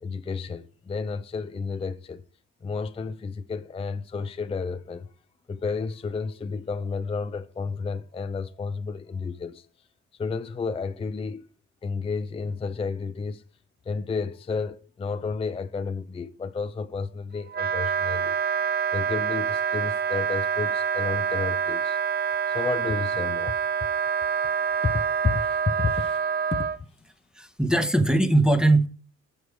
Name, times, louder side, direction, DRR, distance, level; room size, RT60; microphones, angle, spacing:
voice 1, 0.0-2.2 2.6-5.1 5.5-9.7 10.2-11.4 11.8-13.4 13.9-18.4 18.9-22.0 22.5-23.6 24.8-26.2 26.5-26.6, left 4 dB, 20° left, 0.4 m, -31 dB
Wind instrument woodwind instrument, 17.5-26.8, right 7 dB, 35° right, 0.5 m, -26 dB
voice 2, 27.3-28.9, right 2 dB, ahead, 1.0 m, -20 dB
7.0 x 6.4 x 4.7 m
cardioid pair, 90°, 30 cm